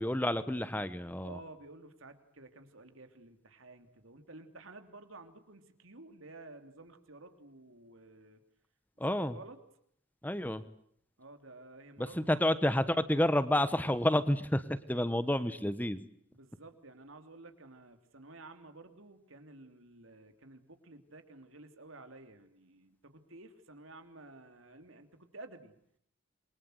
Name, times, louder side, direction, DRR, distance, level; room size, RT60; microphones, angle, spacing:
voice 1, 0.0-1.4 9.0-9.4 10.2-10.6 12.0-16.0, left 1 dB, 10° left, 13 dB, 1.2 m, -30 dB
voice 2, 1.2-8.4 9.1-9.6 11.2-12.4 16.3-25.7, right 2 dB, 75° right, 7 dB, 3.1 m, -52 dB
27.5 x 23.5 x 8.0 m, 0.69 s
head